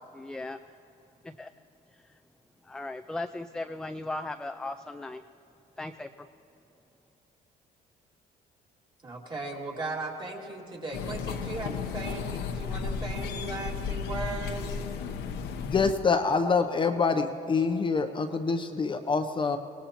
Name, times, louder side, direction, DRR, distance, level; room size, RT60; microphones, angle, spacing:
voice 1, 0.1-0.6 1.2-1.5 1.9-2.2 2.6-5.2 5.8-6.3, left 2 dB, 5° left, 8 dB, 0.3 m, -37 dB
voice 2, 9.0-14.7, right 3 dB, 30° right, -1 dB, 2.2 m, -37 dB
sound 1, 10.9-15.9, left 6 dB, 80° left, 0.9 m, -34 dB
voice 3, 15.7-19.6, left 4 dB, 30° left, 6 dB, 0.7 m, -26 dB
23.5 x 18.5 x 2.9 m, 3.0 s
cardioid pair, 110°, 17 cm